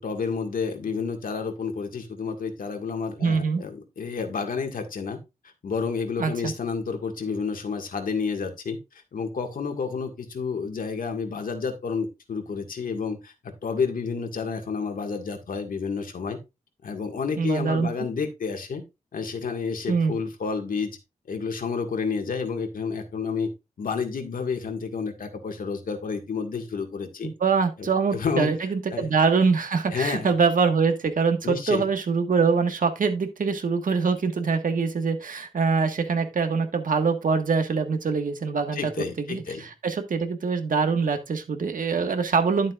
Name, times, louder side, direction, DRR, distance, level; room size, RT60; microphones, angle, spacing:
voice 1, 0.0-5.2 5.6-8.8 9.1-16.4 16.8-18.8 19.1-21.0 21.3-23.5 23.8-27.3 27.8-28.6 28.9-29.1 29.9-30.3 31.4-31.9 38.7-39.6, left 5 dB, 75° left, 1.9 m, -30 dB
voice 2, 3.2-3.6 6.2-6.5 17.4-17.9 19.9-20.2 27.2-42.7, right 5 dB, 70° right, 1.6 m, -24 dB
11.5 x 7.4 x 2.5 m
wide cardioid pair, 95°, 14 cm